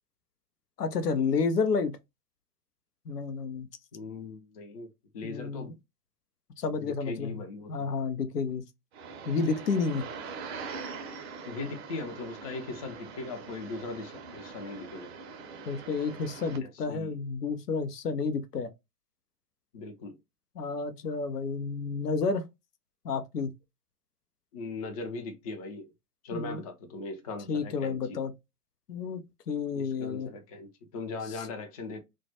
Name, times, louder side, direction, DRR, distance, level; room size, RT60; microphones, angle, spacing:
voice 1, 0.8-1.9 3.1-3.7 5.2-5.7 6.6-7.4 7.7-8.6 9.3-10.0 15.7-18.7 20.6-22.4 23.0-23.5 26.3-26.6 27.5-28.3 28.9-29.2 29.5-30.3, left 4 dB, 90° left, 0.6 m, -30 dB
voice 2, 3.9-4.9 5.1-5.7 6.8-7.9 11.4-15.1 16.6-17.2 19.7-20.2 24.5-25.9 26.2-28.2 29.7-32.0, left 3 dB, 25° left, 0.3 m, -39 dB
sound 1, 8.9-16.6, right 5 dB, 45° right, 0.6 m, -43 dB
2.2 x 2.0 x 2.7 m
figure-of-eight pair, 110°, 46 cm